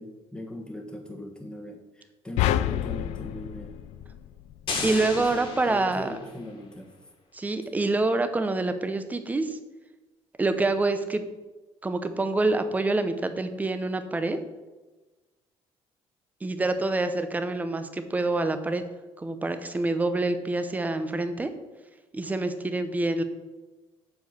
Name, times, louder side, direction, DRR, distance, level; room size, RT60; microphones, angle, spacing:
voice 1, 0.0-3.8 4.7-6.9, left 1 dB, 10° left, 2 dB, 1.4 m, -40 dB
sound 1, 2.4-4.8, left 12 dB, 90° left, 0.4 m, -28 dB
sound 2, 4.7-6.5, left 4 dB, 50° left, 2.0 m, -34 dB
voice 2, 4.8-6.2 7.3-9.6 10.4-11.2 11.8-14.4 16.4-18.8 19.2-21.5 22.1-23.2, right 2 dB, 15° right, 9 dB, 0.8 m, -26 dB
7.9 x 4.7 x 6.8 m, 1.2 s
cardioid pair, 130°, 11 cm